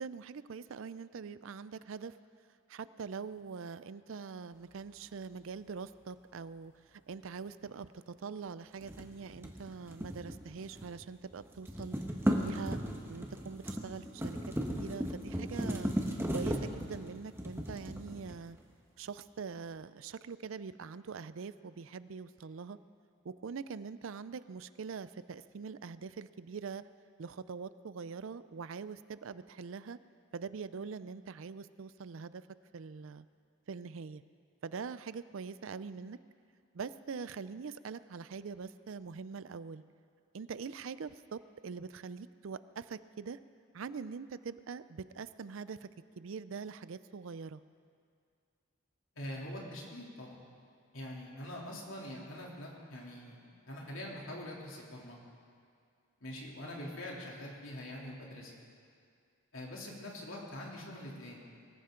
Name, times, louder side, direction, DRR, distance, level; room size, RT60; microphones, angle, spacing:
voice 1, 0.0-2.1 2.7-12.0 12.4-12.8 13.1-14.4 14.7-15.9 16.3-18.6 19.0-22.8 23.2-26.8 27.2-30.0 30.3-32.5 32.7-33.2 33.7-34.2 34.6-36.2 36.7-39.8 40.3-43.4 43.7-45.9 46.2-47.6, right 5 dB, 70° right, 15 dB, 0.5 m, -43 dB
sound 1, 8.8-11.0 11.3-18.6, equal, 10° right, 1.2 m, -36 dB
voice 2, 49.1-50.4 50.9-55.2 56.2-58.5 59.5-61.4, left 1 dB, 70° left, -3 dB, 3.1 m, -44 dB
23.0 x 14.5 x 3.8 m, 2.3 s
head